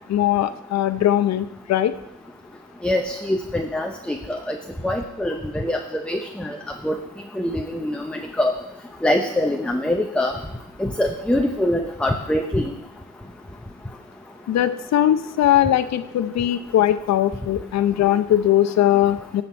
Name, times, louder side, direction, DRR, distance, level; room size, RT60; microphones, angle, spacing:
voice 1, 0.1-1.9 14.5-19.4, left 12 dB, 60° left, 12 dB, 0.7 m, -20 dB
voice 2, 2.8-4.6 4.8-5.8 6.1-6.6 6.8-6.9 7.4-8.5 9.0-10.4 10.8-12.7, left 1 dB, 5° left, 4 dB, 0.6 m, -24 dB
11.5 x 6.6 x 4.4 m, 0.86 s
cardioid pair, 90°, 30 cm